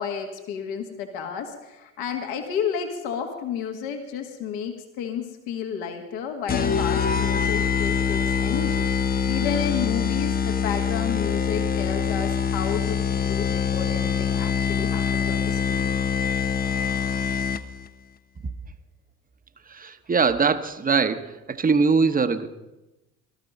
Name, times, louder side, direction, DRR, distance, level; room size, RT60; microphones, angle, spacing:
voice 1, 0.0-16.0, left 7 dB, 65° left, 4 dB, 1.9 m, -31 dB
sound 1, 6.5-17.9, left 7 dB, 20° left, 0.7 m, -24 dB
voice 2, 19.7-22.5, right 5 dB, 20° right, 10 dB, 1.1 m, -22 dB
19.0 x 13.0 x 5.5 m, 1.0 s
hypercardioid pair, 65°, 41 cm